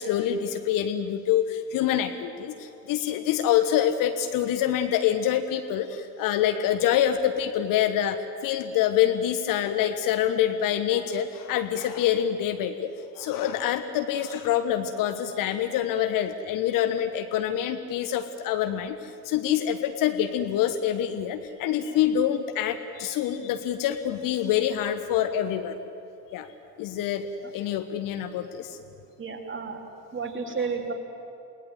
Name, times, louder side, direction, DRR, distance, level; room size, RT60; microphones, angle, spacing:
voice 1, 0.0-25.8 26.3-26.5 26.8-28.8, left 10 dB, 40° left, 8 dB, 1.3 m, -26 dB
voice 2, 29.2-29.8 30.1-30.9, right 5 dB, 25° right, 2 dB, 3.2 m, -31 dB
29.0 x 19.5 x 7.8 m, 2.6 s
figure-of-eight pair, 70°, 50 cm